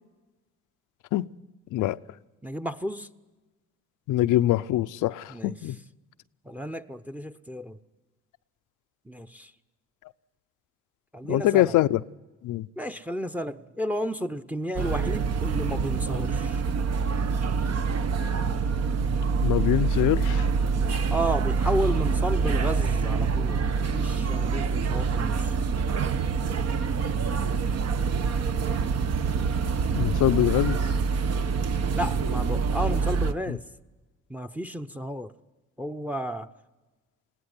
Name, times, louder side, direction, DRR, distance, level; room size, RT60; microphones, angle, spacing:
voice 1, 2.4-3.1 5.3-5.6 6.4-7.8 9.1-9.5 11.1-11.7 12.8-16.6 21.1-25.6 31.6-33.6 34.3-35.3 35.8-36.5, equal, 5° right, 0.7 m, -32 dB
voice 2, 4.1-5.8 11.3-12.0 12.4-12.7 19.4-20.5 29.9-30.8 33.5-33.6, left 15 dB, 85° left, 0.6 m, -23 dB
sound 1, 14.8-33.3, right 5 dB, 55° right, 1.1 m, -26 dB
20.5 x 16.5 x 9.7 m
cardioid pair, 90°, 30 cm